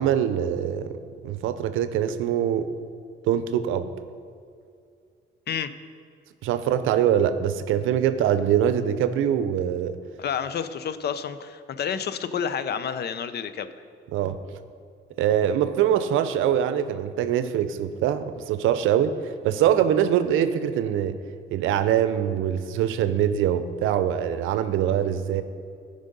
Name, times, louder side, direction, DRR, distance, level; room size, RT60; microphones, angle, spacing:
voice 1, 0.0-2.7 3.2-3.9 6.4-10.0 14.1-14.4 15.2-21.1 21.5-25.4, right 9 dB, 90° right, 11 dB, 0.6 m, -23 dB
voice 2, 10.2-13.7, left 7 dB, 55° left, 13 dB, 0.6 m, -29 dB
12.5 x 5.1 x 5.3 m, 2.3 s
cardioid pair, 90°, 20 cm